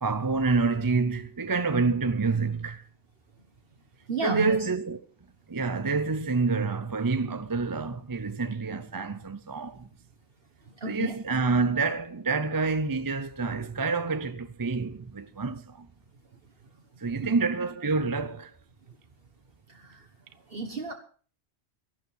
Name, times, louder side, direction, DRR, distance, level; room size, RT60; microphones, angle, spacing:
voice 1, 0.0-2.8 4.2-5.0 5.5-9.9 10.9-15.9 17.0-18.5, right 4 dB, 25° right, 0.5 m, -27 dB
voice 2, 4.1-4.6 10.8-11.2 17.1-17.2 19.7-20.0 20.5-20.9, right 3 dB, 60° right, 1.6 m, -32 dB
14.0 x 11.5 x 6.2 m
omnidirectional pair, 1.1 m